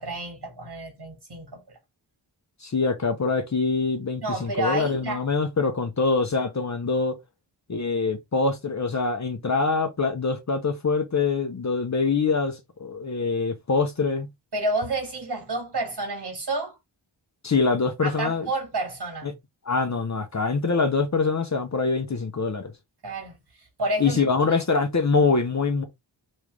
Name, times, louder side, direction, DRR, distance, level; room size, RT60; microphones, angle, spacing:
voice 1, 0.0-1.8 4.2-5.2 14.5-16.8 18.0-19.3 23.0-24.6, right 2 dB, 60° right, 1.9 m, -30 dB
voice 2, 2.6-7.2 7.7-14.3 17.4-18.5 19.2-19.3 19.7-22.7 24.0-25.8, left 4 dB, 40° left, 0.7 m, -24 dB
3.1 x 2.4 x 3.3 m
cardioid pair, 50°, 46 cm